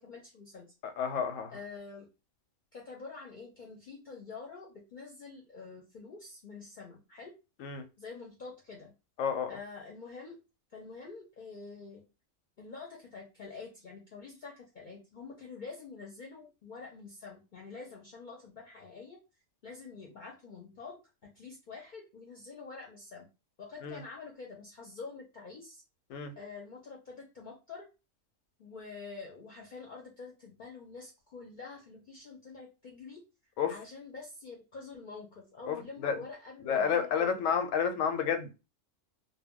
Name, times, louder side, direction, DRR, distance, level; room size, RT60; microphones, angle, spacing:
voice 1, 0.0-0.7 1.5-2.1 2.7-7.3 8.0-8.9 9.5-10.4 10.7-12.0 12.6-19.2 19.6-23.3 23.6-25.8 26.4-27.9 28.6-33.2 33.7-37.5, left 4 dB, 50° left, 0.6 m, -47 dB
voice 2, 0.8-1.5 7.6-7.8 9.2-9.5 23.8-24.0 26.1-26.3 33.6-33.7 35.7-36.2 36.7-38.5, left 7 dB, 85° left, 0.9 m, -30 dB
2.2 x 2.2 x 3.5 m
omnidirectional pair, 1.3 m